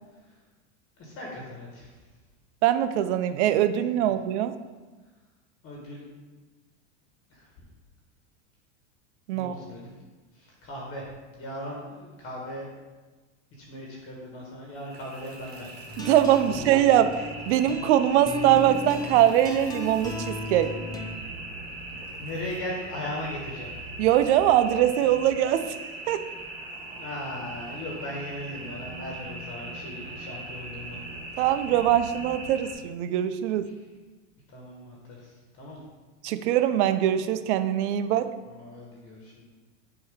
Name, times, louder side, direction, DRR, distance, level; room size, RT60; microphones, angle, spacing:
voice 1, 1.0-2.0 4.0-4.1 5.6-6.0 7.3-7.5 9.3-9.9 10.3-11.1 11.4-12.7 13.6-15.7 16.5-16.7 22.2-23.7 26.9-31.0 31.3-31.4 33.5-33.6 34.5-35.8 38.4-39.4, left 1 dB, 35° left, -3 dB, 1.4 m, -38 dB
voice 2, 2.6-4.5 9.3-9.5 16.0-20.7 24.0-25.7 26.1-26.2 31.4-33.6 36.2-38.3, right 11 dB, 65° right, 11 dB, 0.6 m, -22 dB
sound 1, 14.7-32.7, right 2 dB, 25° right, 1.4 m, -40 dB
sound 2, 15.9-21.2, left 2 dB, 10° left, 0.3 m, -36 dB
6.9 x 2.9 x 5.1 m, 1.3 s
supercardioid pair, 130°, 37 cm